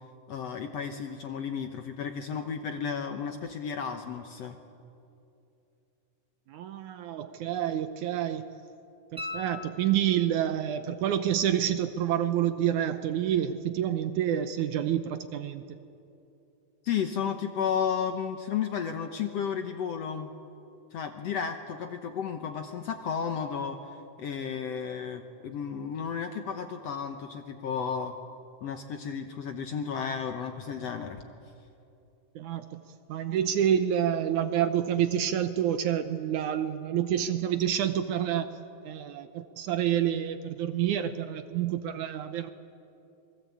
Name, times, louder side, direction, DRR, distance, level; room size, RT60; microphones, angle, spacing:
voice 1, 0.3-4.6 16.8-20.3 20.9-23.8 24.2-28.1 28.6-31.2, left 7 dB, 65° left, 6 dB, 1.7 m, -33 dB
voice 2, 6.5-8.5 9.1-15.6 32.4-32.8 33.1-38.6 38.8-42.5, right 10 dB, 75° right, 10 dB, 2.0 m, -28 dB
sound 1, 9.2-10.5 13.3-13.4, left 3 dB, 10° right, 1.4 m, -40 dB
27.5 x 22.5 x 8.5 m, 2.7 s
omnidirectional pair, 4.0 m